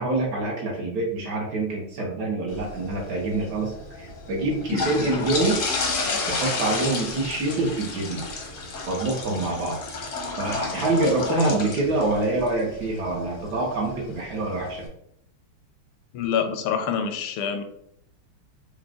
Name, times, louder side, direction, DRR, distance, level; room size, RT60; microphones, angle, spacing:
voice 1, 0.0-3.7 4.0-5.6 6.3-8.2 8.9-9.8 10.4-14.9, right 2 dB, 60° right, -1 dB, 1.2 m, -26 dB
sound 1, 2.5-14.9, left 3 dB, 60° left, 0.8 m, -32 dB
voice 2, 16.1-17.6, left 7 dB, 85° left, 7 dB, 1.5 m, -26 dB
4.8 x 2.2 x 3.6 m, 0.71 s
omnidirectional pair, 2.4 m